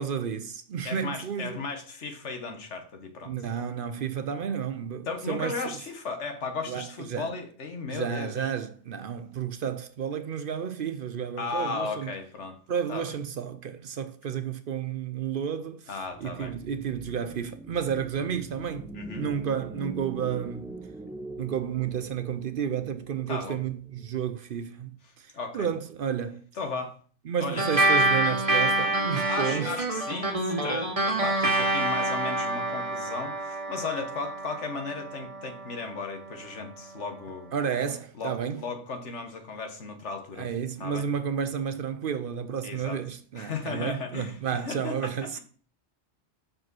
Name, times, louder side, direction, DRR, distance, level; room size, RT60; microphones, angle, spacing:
voice 1, 0.0-1.6 3.3-5.6 6.7-7.3 7.9-12.1 12.7-20.8 21.4-26.4 27.3-29.8 37.5-38.6 40.4-45.4, right 8 dB, 60° right, 0.7 m, -31 dB
voice 2, 0.8-3.3 5.1-8.5 11.4-12.6 12.9-13.1 15.9-16.5 18.9-19.3 23.3-23.6 25.3-25.7 26.6-27.0 27.4-27.7 29.3-37.5 38.2-40.5 40.8-41.0 42.6-43.0 43.4-45.4, left 4 dB, 85° left, 1.6 m, -35 dB
sound 1, 16.1-24.4, right 2 dB, 5° right, 0.6 m, -43 dB
sound 2, 27.6-36.4, right 2 dB, 30° right, 1.1 m, -27 dB
6.0 x 5.0 x 6.1 m
omnidirectional pair, 1.2 m